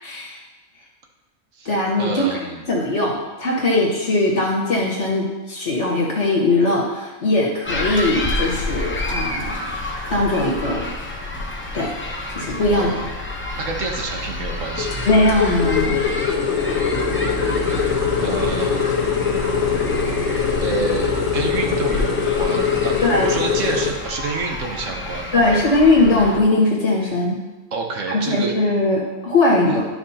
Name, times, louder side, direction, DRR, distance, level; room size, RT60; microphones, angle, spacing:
voice 1, 0.0-0.4 1.7-2.4 2.7-9.7 10.1-10.9 11.7-11.9 12.3-12.9 15.0-15.9 23.0-23.3 25.3-27.4 28.1-29.9, left 2 dB, 60° left, -3 dB, 2.0 m, -19 dB
voice 2, 2.0-2.8 12.6-13.1 13.6-15.2 18.2-18.9 20.6-25.6 27.7-28.5 29.7-29.8, right 4 dB, 70° right, 2 dB, 1.3 m, -28 dB
sound 1, 7.7-26.4, left 1 dB, 10° left, 0.6 m, -29 dB
sound 2, 14.8-23.9, left 7 dB, 80° left, 1.6 m, -22 dB
12.0 x 5.7 x 2.9 m, 1.1 s
omnidirectional pair, 1.4 m